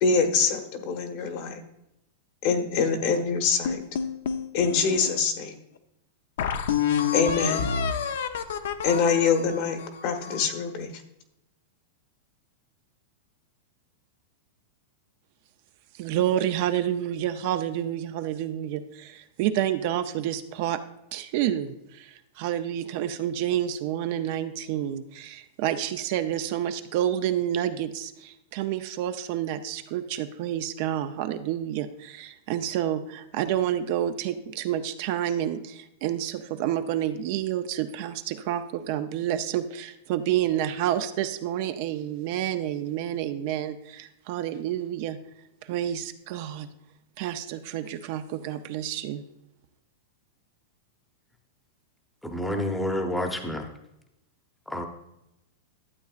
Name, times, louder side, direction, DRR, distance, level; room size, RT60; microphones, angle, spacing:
voice 1, 0.0-1.6 2.4-3.8 4.5-5.5 7.1-7.6 8.8-10.9, left 5 dB, 45° left, 5 dB, 1.1 m, -24 dB
sound 1, 3.7-5.2 5.8-5.9 6.4-10.6, left 7 dB, 75° left, 0.6 m, -29 dB
voice 2, 16.0-20.8 21.1-45.2 45.6-46.7 47.2-49.2, right 11 dB, 50° right, 10 dB, 0.5 m, -29 dB
voice 3, 52.2-53.7 54.7-54.9, left 1 dB, 5° left, 4 dB, 0.8 m, -29 dB
12.0 x 8.0 x 2.4 m, 0.86 s
supercardioid pair, 155°, 0 cm